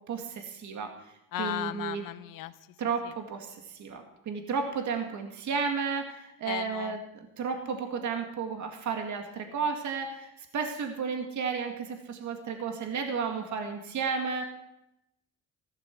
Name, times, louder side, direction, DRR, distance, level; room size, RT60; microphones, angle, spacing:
voice 1, 0.1-0.9 1.4-2.0 2.8-14.4, right 5 dB, 60° right, 4 dB, 2.0 m, -33 dB
voice 2, 1.3-2.5 3.0-3.1 6.4-7.0, left 14 dB, 80° left, 13 dB, 0.8 m, -35 dB
14.5 x 11.5 x 4.6 m, 0.84 s
supercardioid pair, 80°, 33 cm